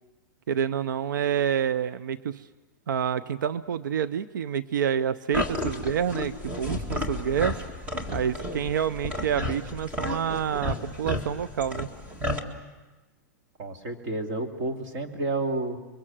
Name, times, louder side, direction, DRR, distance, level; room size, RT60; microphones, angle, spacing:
voice 1, 0.5-2.5 2.9-7.6 8.1-11.9, right 8 dB, 85° right, 15 dB, 0.7 m, -28 dB
sound 1, 5.3-12.4, left 1 dB, 15° right, 1.9 m, -32 dB
voice 2, 13.6-15.8, right 2 dB, 35° right, 4 dB, 2.7 m, -30 dB
27.0 x 23.0 x 7.5 m, 1.2 s
supercardioid pair, 160°, 10 cm